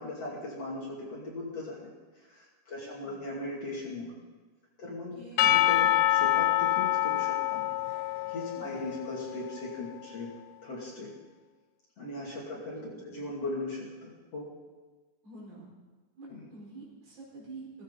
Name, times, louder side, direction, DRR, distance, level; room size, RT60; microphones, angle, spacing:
voice 1, 0.0-1.9 2.3-4.1 4.8-5.2 5.5-7.7 8.3-10.3 10.6-11.1 12.0-14.6 16.3-16.5, left 2 dB, 40° left, -5 dB, 3.4 m, -38 dB
voice 2, 2.7-3.2 5.1-5.6 8.5-8.8 12.5-12.6 12.9-13.2 15.2-15.7 16.2-17.8, right 2 dB, 65° right, -3 dB, 6.4 m, -47 dB
Percussion / Church bell, 5.4-9.7, left 13 dB, 80° left, 2.1 m, -26 dB
17.0 x 15.5 x 4.1 m, 1.3 s
omnidirectional pair, 4.8 m